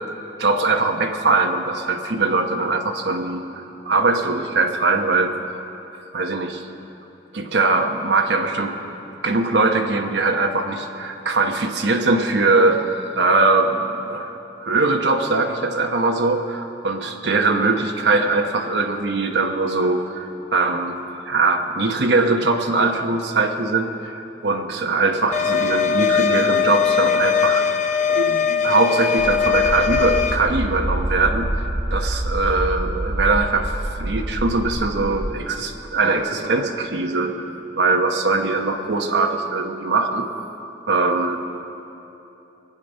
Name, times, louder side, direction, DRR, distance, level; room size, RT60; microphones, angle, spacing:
voice 1, 0.4-5.3 6.1-6.7 7.3-8.8 9.2-21.0 21.3-27.7 28.1-31.5 31.9-40.2 40.9-41.4, right 3 dB, 70° right, 3 dB, 1.0 m, -21 dB
sound 1, 25.3-30.4, left 7 dB, 45° left, 0.7 m, -20 dB
sound 2, 29.2-35.3, right 1 dB, 45° right, 1.4 m, -26 dB
23.5 x 9.5 x 5.4 m, 3.0 s
head